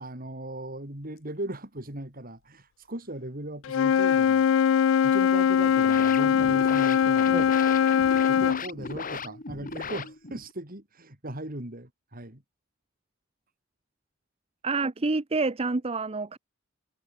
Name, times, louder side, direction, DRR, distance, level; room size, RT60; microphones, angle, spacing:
voice 1, 0.0-4.5 5.0-7.4 8.3-12.4, right 1 dB, 45° right, 4.5 m, -38 dB
Wind instrument woodwind instrument, 3.7-8.6, left 7 dB, 75° left, 0.3 m, -21 dB
sound 1, 5.5-10.5, left 4 dB, 45° left, 3.0 m, -38 dB
voice 2, 14.6-16.4, right 3 dB, 30° right, 0.7 m, -28 dB
head